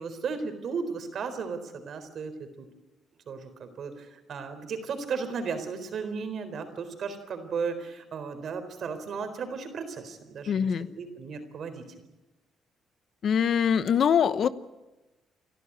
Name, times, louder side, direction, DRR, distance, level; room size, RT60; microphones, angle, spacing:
voice 1, 0.0-2.7 3.3-11.8, right 5 dB, 60° right, 9 dB, 4.0 m, -35 dB
voice 2, 10.5-10.9 13.2-14.5, left 7 dB, 60° left, 14 dB, 0.9 m, -23 dB
29.5 x 12.5 x 9.8 m, 1.1 s
cardioid pair, 90°, 0 cm